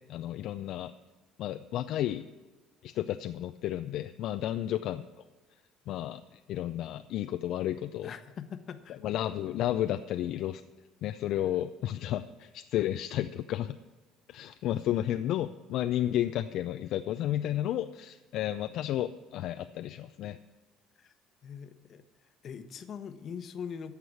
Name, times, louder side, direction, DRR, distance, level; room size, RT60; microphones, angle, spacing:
voice 1, 0.1-0.9 1.4-2.3 2.8-5.0 5.9-8.1 8.9-10.6 11.0-13.8 14.3-20.4, left 12 dB, 65° left, 9 dB, 0.4 m, -32 dB
voice 2, 8.0-9.0 21.0-21.1 21.4-22.0 22.4-24.0, left 7 dB, 50° left, 10 dB, 0.9 m, -42 dB
14.0 x 4.8 x 8.5 m, 1.3 s
supercardioid pair, 90°, 0 cm